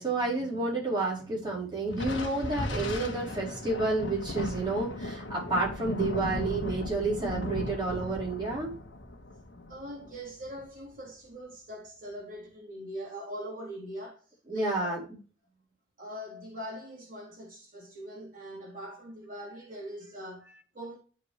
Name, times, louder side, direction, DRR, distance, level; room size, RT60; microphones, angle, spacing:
voice 1, 0.0-8.7 14.5-15.0, right 3 dB, 25° right, 4.6 m, -30 dB
Thunder, 1.9-10.7, left 2 dB, 80° left, 1.8 m, -36 dB
voice 2, 9.7-14.9 16.0-21.0, equal, 45° right, 4.0 m, -42 dB
14.0 x 4.9 x 3.3 m
head